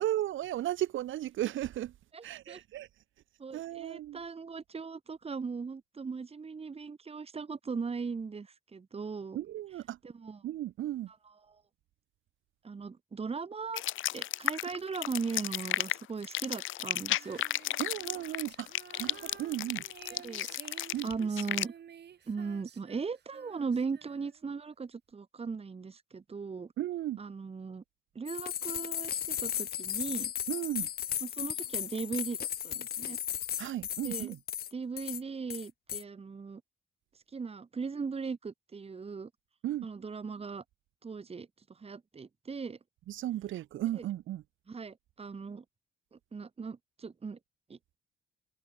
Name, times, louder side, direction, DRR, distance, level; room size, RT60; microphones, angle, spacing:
voice 1, 0.0-1.9 2.2-2.9 3.5-4.2 9.3-10.0 10.4-11.1 17.8-18.7 19.0-19.8 20.9-21.1 26.8-27.2 30.5-30.9 33.6-34.4 39.6-39.9 43.1-44.4, right 13 dB, 80° right, 1.8 m, -35 dB
voice 2, 2.1-2.6 3.4-9.4 10.0-10.4 12.6-13.8 14.1-17.4 20.2-20.5 21.0-21.7 22.3-26.7 27.2-27.8 28.2-30.3 31.2-33.2 34.0-34.3 34.7-36.6 37.3-39.3 39.8-40.6 41.0-42.8 44.0-44.1 44.7-45.6 46.1-47.4 47.7-47.8, right 5 dB, 30° right, 1.8 m, -38 dB
sound 1, 13.7-21.7, left 14 dB, 85° left, 2.3 m, -33 dB
Female singing, 17.1-24.5, right 8 dB, 55° right, 5.7 m, -52 dB
sound 2, 28.3-34.7 35.0-35.2 35.5-36.0, left 10 dB, 50° left, 0.6 m, -35 dB
cardioid pair, 90°, 20 cm